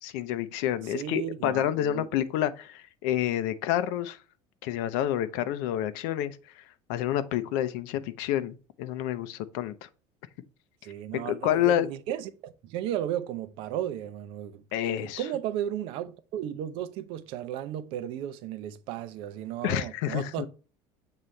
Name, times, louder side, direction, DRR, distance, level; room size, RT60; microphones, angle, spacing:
voice 1, 0.0-4.2 4.6-6.6 6.9-9.9 11.2-11.9 14.7-15.2 19.6-20.5, left 11 dB, 70° left, 0.6 m, -29 dB
voice 2, 0.8-2.1 10.8-20.5, right 11 dB, 55° right, 0.7 m, -35 dB
7.4 x 4.0 x 3.2 m
cardioid pair, 175°, 11 cm